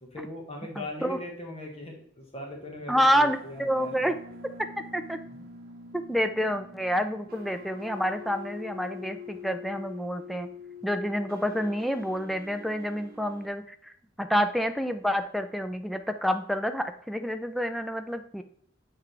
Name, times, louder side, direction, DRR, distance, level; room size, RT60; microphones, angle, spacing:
voice 1, 0.0-4.1 5.3-5.5, left 1 dB, 30° left, 1 dB, 1.3 m, -40 dB
voice 2, 0.8-1.2 2.9-4.2 4.9-5.2 6.1-10.5 10.8-13.9 14.2-18.4, equal, ahead, 7 dB, 0.4 m, -28 dB
sound 1, 2.5-13.5, left 4 dB, 50° right, 1.0 m, -45 dB
6.9 x 4.7 x 3.2 m, 0.62 s
head